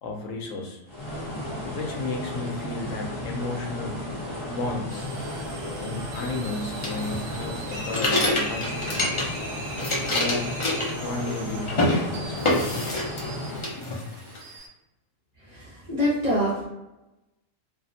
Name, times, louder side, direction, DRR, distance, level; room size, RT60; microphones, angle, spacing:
voice 1, 0.0-0.8 1.7-4.0 4.5-5.1 5.8-9.4 10.1-10.5 11.0-12.6, left 2 dB, 75° left, 1 dB, 0.9 m, -33 dB
sound 1, 0.9-13.8, left 1 dB, 30° left, 0.9 m, -34 dB
sound 2, 4.9-14.7, right 2 dB, 75° right, 0.9 m, -40 dB
sound 3, 6.8-9.4 9.7-11.4 11.7-12.0 12.4-13.3 13.6-14.4, left 2 dB, 50° left, 0.3 m, -26 dB
voice 2, 15.5-16.6, equal, 40° right, -8 dB, 0.7 m, -25 dB
2.6 x 2.1 x 2.6 m, 0.96 s
omnidirectional pair, 1.4 m